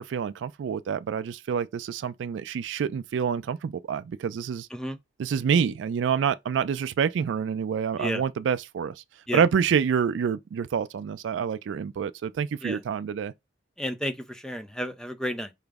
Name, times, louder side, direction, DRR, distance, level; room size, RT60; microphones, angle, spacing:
voice 1, 0.0-4.7 5.2-8.9 9.3-13.3, right 7 dB, 85° right, 0.3 m, -27 dB
voice 2, 13.8-15.5, equal, 5° left, 0.4 m, -32 dB
4.8 x 2.0 x 3.4 m
head